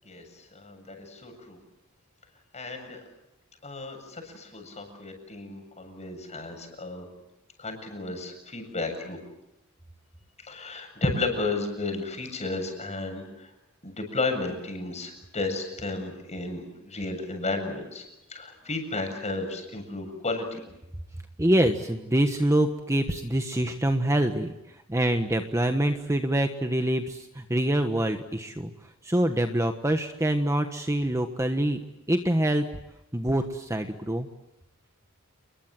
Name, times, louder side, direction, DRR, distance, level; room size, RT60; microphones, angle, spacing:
voice 1, 0.5-1.6 2.5-3.0 3.6-7.1 7.6-9.2 10.5-13.5 13.8-18.0 18.3-20.6, left 2 dB, 35° left, 4 dB, 7.6 m, -33 dB
voice 2, 21.4-28.7 29.0-31.8 32.1-32.6 33.1-34.3, right 1 dB, 15° right, 6 dB, 1.3 m, -25 dB
30.0 x 21.5 x 7.7 m, 0.89 s
head